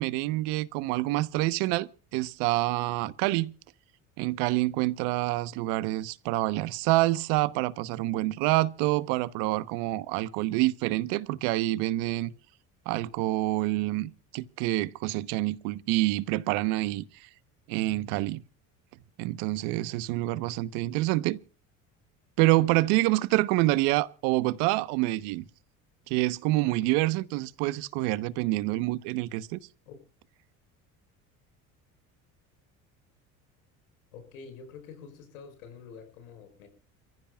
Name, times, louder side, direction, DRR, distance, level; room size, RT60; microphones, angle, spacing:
voice 1, 0.0-3.5 4.2-12.3 12.8-17.3 17.7-18.4 19.2-21.4 22.4-25.5 26.1-29.6, right 18 dB, 75° right, 1.2 m, -27 dB
voice 2, 34.1-36.7, left 5 dB, 90° left, 5.9 m, -47 dB
29.0 x 15.0 x 2.4 m
hypercardioid pair, 75°, 42 cm